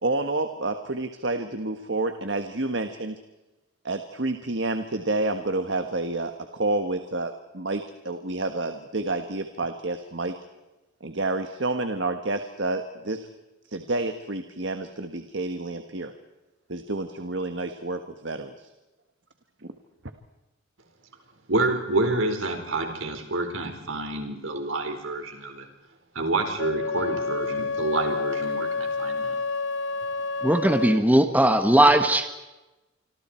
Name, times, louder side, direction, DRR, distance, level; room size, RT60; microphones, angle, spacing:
voice 1, 0.0-3.1 3.8-10.3 11.0-13.3 13.7-16.1 16.7-18.7, right 2 dB, 60° right, 7 dB, 1.5 m, -29 dB
voice 2, 21.5-25.6 26.1-29.4, right 2 dB, 80° right, 5 dB, 4.6 m, -28 dB
Wind instrument woodwind instrument, 26.6-31.1, left 4 dB, 65° left, 1.0 m, -29 dB
voice 3, 30.4-32.3, right 1 dB, 10° right, 7 dB, 1.4 m, -18 dB
26.5 x 26.5 x 4.5 m, 1.0 s
head